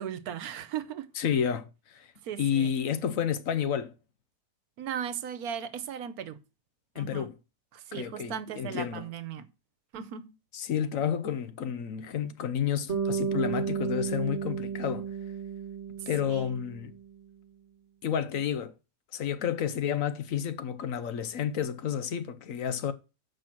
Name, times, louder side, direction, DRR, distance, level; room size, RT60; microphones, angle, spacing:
voice 1, 0.0-1.1 2.2-2.7 4.8-6.4 6.9-7.3 7.7-9.5 9.9-10.3 16.0-16.5, right 9 dB, 80° right, 1.3 m, -37 dB
voice 2, 1.2-2.1 2.4-3.9 7.0-7.3 7.9-9.1 10.5-15.1 16.1-16.9 18.0-18.7 19.1-22.9, left 8 dB, 65° left, 1.1 m, -30 dB
Bass guitar, 12.9-17.2, right 7 dB, 50° right, 1.3 m, -33 dB
7.6 x 5.1 x 5.8 m
omnidirectional pair, 1.6 m